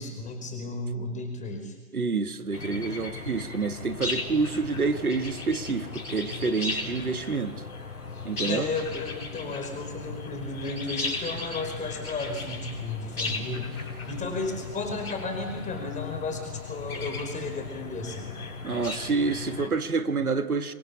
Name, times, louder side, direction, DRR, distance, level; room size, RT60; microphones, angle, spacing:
voice 1, 0.0-1.7 8.5-13.7 14.1-18.3, left 3 dB, 15° left, 4 dB, 5.1 m, -34 dB
voice 2, 1.9-7.6 8.2-8.7 13.2-13.4 18.6-20.7, right 4 dB, 90° right, 9 dB, 1.7 m, -28 dB
sound 1, 2.5-19.7, left 3 dB, 85° left, 4.6 m, -36 dB
27.5 x 23.0 x 7.3 m, 1.2 s
figure-of-eight pair, 115°, 43 cm